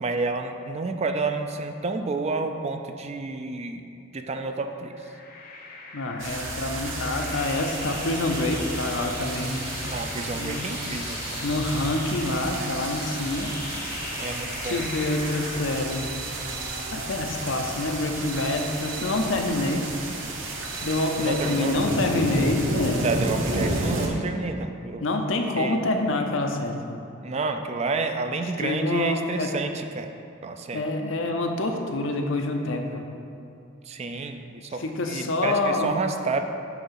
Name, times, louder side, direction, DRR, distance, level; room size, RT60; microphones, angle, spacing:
voice 1, 0.0-3.8 4.1-4.9 9.9-11.4 14.2-14.8 21.2-21.7 23.0-25.0 25.6-25.8 27.2-30.1 30.4-30.8 33.9-36.4, right 3 dB, 35° right, 6 dB, 0.4 m, -30 dB
sound 1, 4.9-15.7, left 3 dB, 50° left, 0.9 m, -39 dB
voice 2, 5.9-10.7 11.4-13.5 14.6-16.2 16.9-19.9 20.8-23.0 25.0-27.0 28.6-29.5 30.7-33.1 34.8-36.0, left 2 dB, 70° left, 4 dB, 0.7 m, -27 dB
sound 2, 6.2-24.1, right 2 dB, 75° right, 1.1 m, -32 dB
sound 3, 14.6-15.3 15.9-17.0 18.3-19.4 20.6-21.8, right 6 dB, 50° right, 0.9 m, -41 dB
9.0 x 3.5 x 5.7 m, 2.6 s
head